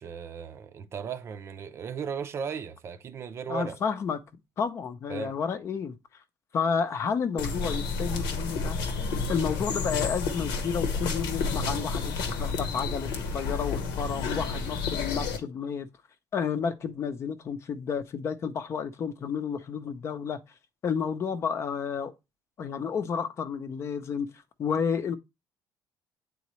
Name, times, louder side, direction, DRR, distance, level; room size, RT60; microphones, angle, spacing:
voice 1, 0.0-3.8 5.1-5.4, right 6 dB, 35° right, 0.6 m, -36 dB
voice 2, 3.5-4.2 4.6-5.9 6.5-8.8 9.3-15.9 16.3-20.4 20.8-22.1 22.6-24.3 24.6-25.2, left 6 dB, 40° left, 0.7 m, -31 dB
sound 1, 7.4-15.4, left 4 dB, 85° left, 1.1 m, -30 dB
8.2 x 3.9 x 3.1 m
cardioid pair, 140°, 7 cm